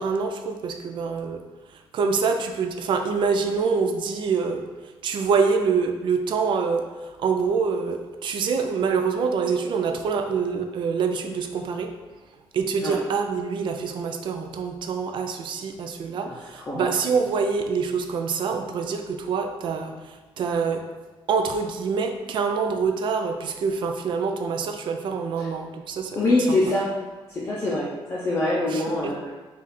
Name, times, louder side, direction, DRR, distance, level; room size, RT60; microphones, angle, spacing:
voice 1, 0.0-1.4 1.9-4.7 5.0-6.8 7.2-11.9 12.5-19.9 20.4-20.8 21.3-26.1 26.5-26.6 28.7-29.1, right 5 dB, 55° right, 5 dB, 0.4 m, -25 dB
voice 2, 16.2-16.9 25.4-25.5 26.1-26.9 27.3-29.2, left 2 dB, 25° left, -7 dB, 0.5 m, -24 dB
4.0 x 2.4 x 4.1 m, 1.2 s
wide cardioid pair, 175°, 10 cm